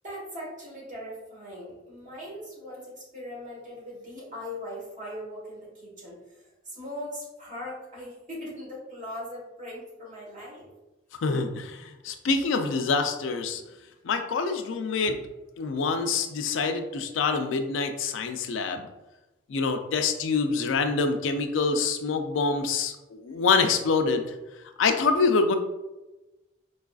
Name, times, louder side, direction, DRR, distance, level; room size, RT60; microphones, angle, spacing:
voice 1, 0.0-10.7, left 1 dB, 40° right, -5 dB, 1.3 m, -40 dB
voice 2, 11.1-13.6 14.0-15.2 15.6-18.9 19.5-24.3 24.8-25.5, left 4 dB, 90° left, 7 dB, 0.4 m, -26 dB
4.6 x 2.4 x 2.3 m, 1.0 s
head